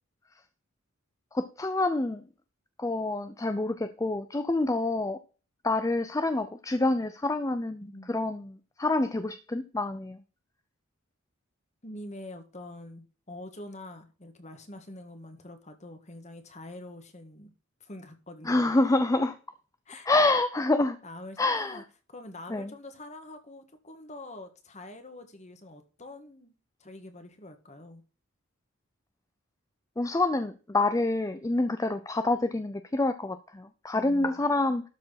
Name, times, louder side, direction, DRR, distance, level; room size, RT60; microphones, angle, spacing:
voice 1, 1.3-2.2 2.8-5.2 5.6-10.2 18.4-19.4 20.1-21.0 21.4-21.8 22.5-22.7 30.0-34.8, left 2 dB, 15° left, 0.5 m, -27 dB
voice 2, 7.8-8.2 11.8-17.5 17.8-18.8 19.9-20.1 21.0-21.8 22.1-26.5 26.8-28.0 33.9-34.4, left 1 dB, 35° left, 1.7 m, -45 dB
12.5 x 4.5 x 5.7 m
head